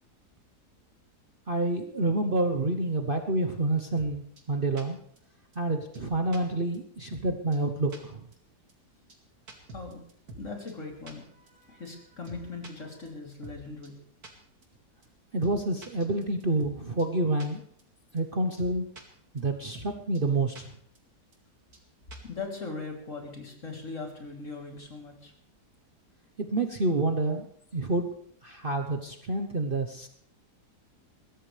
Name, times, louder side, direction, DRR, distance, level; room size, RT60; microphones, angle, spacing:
voice 1, 1.5-5.0 5.5-8.2 15.3-17.6 18.1-18.9 19.3-20.7 26.4-27.5 27.7-28.1 28.4-30.1, right 2 dB, 40° right, 5 dB, 1.1 m, -28 dB
sound 1, 4.0-4.1 4.4-4.5 4.8-4.9 5.2-5.3 5.5-5.6 5.9-6.4 6.7-6.8 7.1-7.3 7.5-7.6 7.9-8.0 8.3-8.4 8.7-8.8 9.1-9.2 9.5-10.4 10.7-10.8 11.1-11.2 11.5-11.6 11.8-11.9 12.2-12.7 13.0-13.1 13.4-13.6 13.8-13.9 14.2-14.3 14.6-14.7 15.0-15.1 15.4-15.5 15.8-16.7 17.0-17.1 17.4-17.5 17.8-17.9 18.2-18.3 18.6-19.0 19.4-19.5 19.7-19.9 20.1-20.2 20.5-20.6 20.9-21.0 21.3-21.4 21.7-21.8 22.1-22.3, right 2 dB, 65° right, 2.9 m, -45 dB
voice 2, 10.3-13.9 22.2-25.3, left 3 dB, 50° left, 1 dB, 3.7 m, -40 dB
22.0 x 16.0 x 3.4 m, 0.65 s
omnidirectional pair, 1.7 m